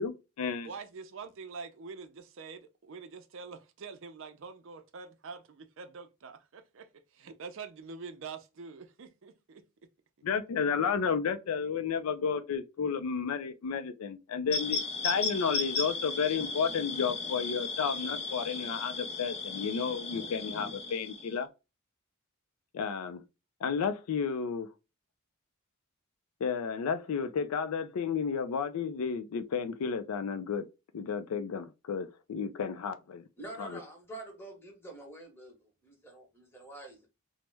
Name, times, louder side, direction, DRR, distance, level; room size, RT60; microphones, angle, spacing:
voice 1, 0.0-0.7 10.2-21.5 22.7-23.2 23.6-24.7 26.4-30.6 30.9-33.2 33.6-33.8, left 6 dB, 80° left, 0.4 m, -32 dB
voice 2, 0.6-9.6, right 5 dB, 60° right, 0.5 m, -45 dB
sound 1, 14.5-21.3, left 4 dB, 30° left, 0.5 m, -35 dB
voice 3, 33.4-37.1, right 2 dB, 10° left, 0.9 m, -47 dB
3.0 x 2.1 x 3.3 m
head